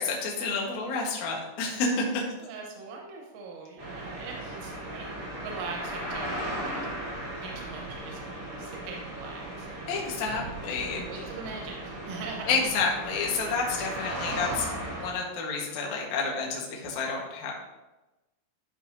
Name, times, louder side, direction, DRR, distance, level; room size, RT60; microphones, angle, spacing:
voice 1, 0.0-2.2 9.9-11.0 12.5-17.5, left 4 dB, 80° left, -2 dB, 1.7 m, -30 dB
voice 2, 2.4-9.9 11.1-12.6 15.7-15.8, right 4 dB, 85° right, 1 dB, 3.6 m, -42 dB
sound 1, 3.8-15.1, right 1 dB, 60° right, 0.8 m, -37 dB
12.0 x 5.4 x 2.7 m, 1.0 s
omnidirectional pair, 5.7 m